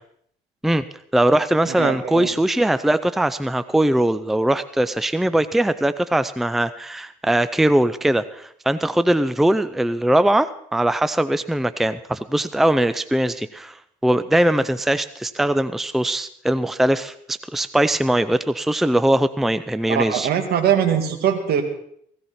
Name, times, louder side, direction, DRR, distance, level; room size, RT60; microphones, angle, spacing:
voice 1, 1.1-20.3, right 1 dB, ahead, 13 dB, 0.5 m, -21 dB
voice 2, 1.7-2.3 19.9-21.6, right 8 dB, 70° right, 5 dB, 2.4 m, -21 dB
16.5 x 16.0 x 4.3 m, 0.67 s
cardioid pair, 110°, 17 cm